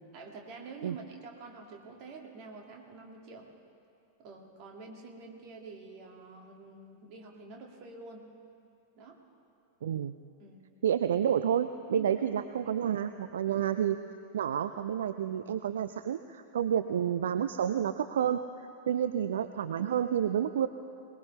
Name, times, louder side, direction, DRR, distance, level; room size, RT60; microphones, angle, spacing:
voice 1, 0.1-3.5 4.2-8.3 9.0-9.2 10.4-10.7 11.9-12.1 12.6-12.7 18.9-19.1, right 4 dB, 40° right, 1 dB, 2.2 m, -47 dB
voice 2, 9.8-10.1 10.8-14.0 14.3-20.7, right 9 dB, 60° right, 10 dB, 0.4 m, -30 dB
22.5 x 19.5 x 3.3 m, 2.5 s
figure-of-eight pair, 90°, 0 cm